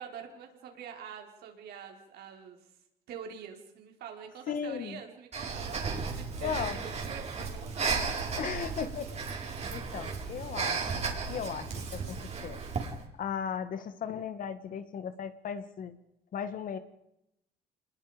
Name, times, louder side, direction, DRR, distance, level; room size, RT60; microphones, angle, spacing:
voice 1, 0.0-2.6 3.1-8.3, right 7 dB, 70° right, 3 dB, 4.9 m, -45 dB
voice 2, 4.5-5.0 6.4-6.8 8.4-11.0 11.3-12.2 12.4-12.9 13.2-16.0 16.3-16.8, left 7 dB, 55° left, 11 dB, 1.9 m, -37 dB
Breathing, 5.3-13.0, right 5 dB, 40° right, 4.4 m, -34 dB
27.0 x 21.0 x 5.2 m, 0.83 s
cardioid pair, 110°, 17 cm